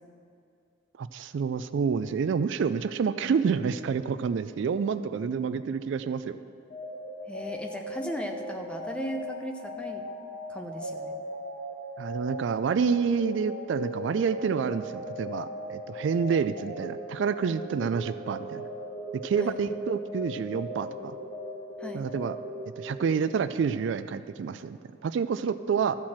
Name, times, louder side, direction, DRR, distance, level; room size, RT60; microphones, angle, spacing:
voice 1, 1.0-6.4 12.0-18.6 19.2-21.2 21.9-22.4 22.8-24.8 25.0-26.0, right 6 dB, 70° right, 12 dB, 0.3 m, -28 dB
sound 1, 6.7-23.3, equal, 55° left, 1.9 m, -38 dB
voice 2, 7.3-10.0 10.5-11.1 19.4-19.6 21.8-22.1, equal, 5° left, 3 dB, 0.6 m, -37 dB
13.0 x 4.4 x 7.4 m, 2.5 s
head